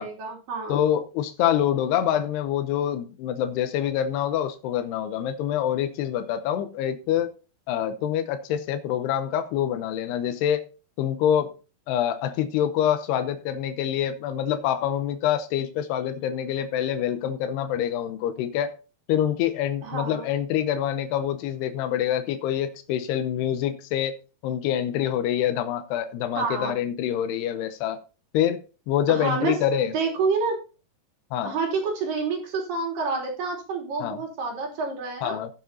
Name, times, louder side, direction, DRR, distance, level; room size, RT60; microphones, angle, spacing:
voice 1, 0.0-0.8 19.8-20.3 26.4-26.8 29.1-29.5 29.9-30.6 31.4-35.4, right 4 dB, 60° right, 0 dB, 4.3 m, -28 dB
voice 2, 0.7-7.3 7.7-10.6 11.0-11.5 11.9-18.7 19.1-24.1 24.4-28.0 28.3-28.6 28.9-29.9 31.3-31.6 34.0-34.2 35.2-35.5, left 10 dB, 90° left, 9 dB, 2.8 m, -26 dB
18.0 x 6.9 x 2.7 m, 0.33 s
omnidirectional pair, 4.7 m